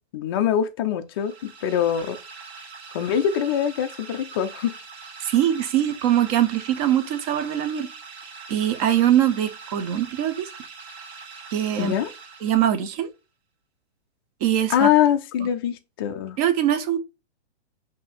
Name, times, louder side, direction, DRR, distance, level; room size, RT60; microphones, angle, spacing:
voice 1, 0.1-2.2 2.9-4.7 11.8-12.1 14.7-16.4, left 10 dB, 25° left, 0.3 m, -23 dB
sound 1, 1.1-13.0, right 4 dB, 70° right, 1.2 m, -42 dB
voice 2, 5.2-7.9 8.5-10.5 11.5-11.9 12.4-13.1 14.4-14.9 15.4-15.5 16.4-17.0, right 11 dB, 35° right, 0.7 m, -22 dB
5.4 x 2.7 x 2.5 m
hypercardioid pair, 130°, 34 cm